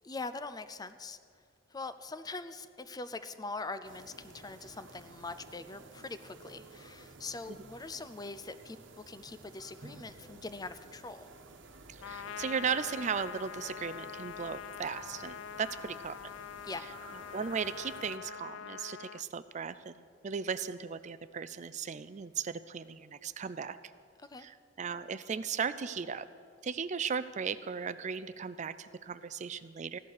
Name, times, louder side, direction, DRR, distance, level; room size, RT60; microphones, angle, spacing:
voice 1, 0.0-1.2 1.7-11.3 16.6-16.9 24.3-24.5, left 3 dB, 20° left, 12 dB, 0.5 m, -42 dB
sound 1, 3.8-18.2, right 3 dB, 65° right, 1.2 m, -53 dB
voice 2, 11.9-16.2 17.3-23.8 24.4-26.3 26.6-30.0, right 6 dB, 35° right, 14 dB, 0.4 m, -36 dB
Trumpet, 12.0-19.2, left 9 dB, 85° left, 0.3 m, -44 dB
15.5 x 11.0 x 6.5 m, 2.3 s
head